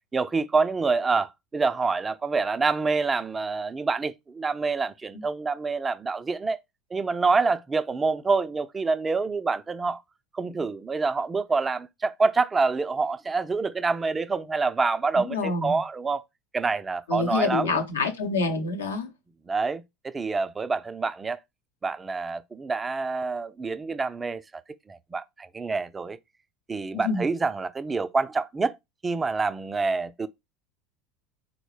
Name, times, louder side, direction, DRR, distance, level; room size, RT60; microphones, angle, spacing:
voice 1, 0.1-6.6 6.9-10.0 10.3-16.2 16.5-17.8 19.5-21.4 21.8-24.6 24.9-26.2 26.7-28.7 29.0-30.3, right 4 dB, 20° right, 0.3 m, -27 dB
voice 2, 15.2-15.8 17.1-19.1 26.9-27.3, left 4 dB, 80° left, 0.7 m, -27 dB
3.9 x 2.0 x 3.1 m
figure-of-eight pair, 75°, 0 cm